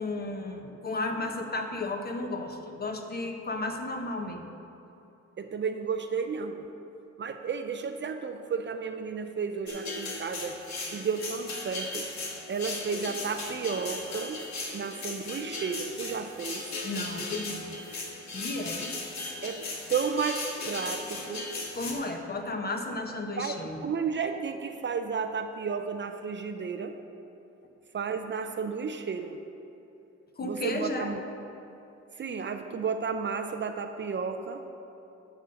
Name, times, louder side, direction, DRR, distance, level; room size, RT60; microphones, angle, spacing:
voice 1, 0.0-4.4 16.8-17.7 18.3-18.9 21.7-23.8 30.4-31.1, left 2 dB, 30° left, 4 dB, 1.0 m, -33 dB
voice 2, 5.4-6.7 7.2-10.6 10.9-12.1 12.5-14.4 14.7-16.7 19.4-21.5 23.4-27.0 27.9-29.4 30.4-31.2 32.2-34.7, right 5 dB, 40° right, 7 dB, 0.5 m, -33 dB
sound 1, 9.7-21.9, left 2 dB, 65° left, 1.7 m, -37 dB
12.0 x 4.3 x 6.4 m, 2.9 s
cardioid pair, 90°, 30 cm